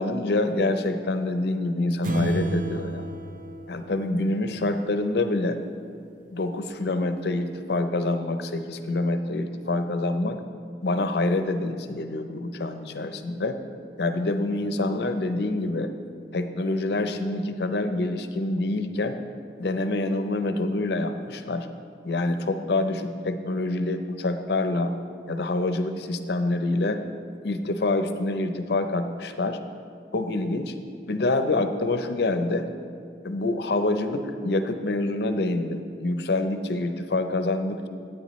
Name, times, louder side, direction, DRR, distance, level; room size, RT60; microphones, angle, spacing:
voice 1, 0.0-3.1 3.7-5.6 6.3-10.4 10.8-13.6 14.0-15.9 16.3-19.2 19.6-21.7 22.0-24.9 25.3-27.0 27.4-29.6 30.1-30.7 31.1-32.7 33.2-37.9, left 2 dB, 65° left, 8 dB, 0.6 m, -26 dB
sound 1, 2.0-4.7, right 2 dB, 45° right, 0.6 m, -31 dB
14.0 x 8.9 x 3.1 m, 2.4 s
head